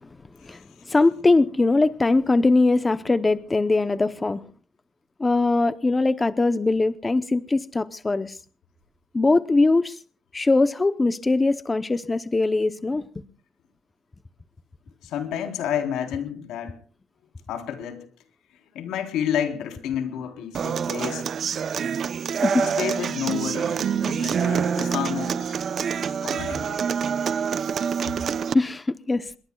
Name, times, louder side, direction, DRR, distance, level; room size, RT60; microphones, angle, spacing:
voice 1, 0.4-4.4 5.2-8.4 9.1-10.0 10.3-13.1 22.4-22.6 28.5-29.3, left 3 dB, 20° left, 0.7 m, -21 dB
voice 2, 15.0-16.8 17.5-18.1 18.7-21.3 22.6-25.7 25.9-26.8 27.1-27.2, left 9 dB, 90° left, 3.7 m, -30 dB
Human voice / Acoustic guitar, 20.5-28.5, right 7 dB, 50° right, 0.7 m, -26 dB
27.0 x 22.0 x 2.3 m
cardioid pair, 125°, 0 cm